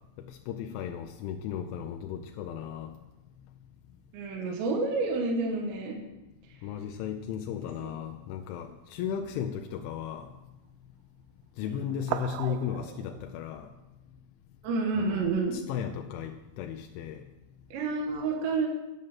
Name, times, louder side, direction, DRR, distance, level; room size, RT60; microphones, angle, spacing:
voice 1, 0.2-2.9 6.6-10.3 11.6-13.7 15.0-17.2, left 8 dB, 85° left, 4 dB, 2.8 m, -35 dB
voice 2, 4.1-5.9 7.8-7.9 11.6-11.9 14.6-15.5 17.7-18.7, right 3 dB, 70° right, 1 dB, 3.3 m, -29 dB
sound 1, 7.6-8.4 9.0-9.2 10.1-10.2 11.9-13.3, right 15 dB, 85° right, 2.7 m, -39 dB
13.0 x 6.6 x 7.4 m, 1.0 s
omnidirectional pair, 6.0 m